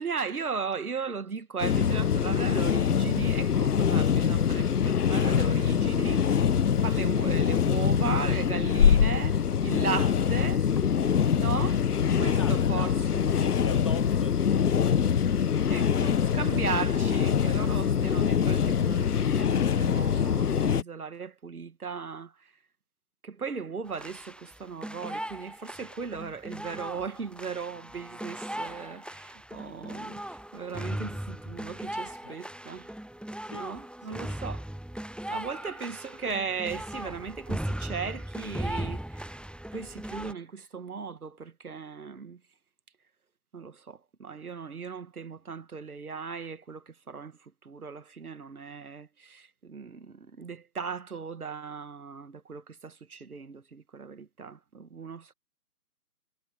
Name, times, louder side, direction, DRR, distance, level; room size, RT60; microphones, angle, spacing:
voice 1, 0.0-10.7 11.3-11.8 12.2-13.3 15.7-22.5 23.2-32.9 33.5-34.6 35.3-39.3 39.7-42.4 43.5-55.3, right 5 dB, 70° right, 1.9 m, -37 dB
sound 1, 1.6-20.8, left 7 dB, 70° left, 0.9 m, -24 dB
voice 2, 12.2-15.5 31.5-31.6 32.0-32.4 33.4-33.7 34.0-34.4, left 4 dB, 20° left, 1.5 m, -43 dB
sound 2, 23.9-40.3, right 1 dB, 5° left, 0.3 m, -38 dB
hypercardioid pair, 175°, 47 cm